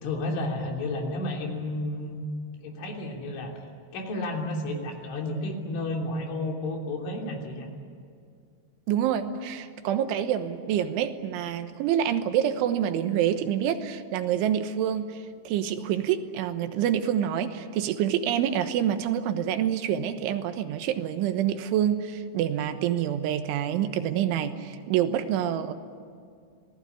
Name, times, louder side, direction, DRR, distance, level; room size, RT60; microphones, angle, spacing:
voice 1, 0.0-2.3 2.6-3.5 3.9-7.7, left 1 dB, 80° left, 1 dB, 5.6 m, -31 dB
voice 2, 8.9-25.7, right 10 dB, 85° right, 9 dB, 3.6 m, -27 dB
27.0 x 19.0 x 9.6 m, 2.3 s
omnidirectional pair, 5.5 m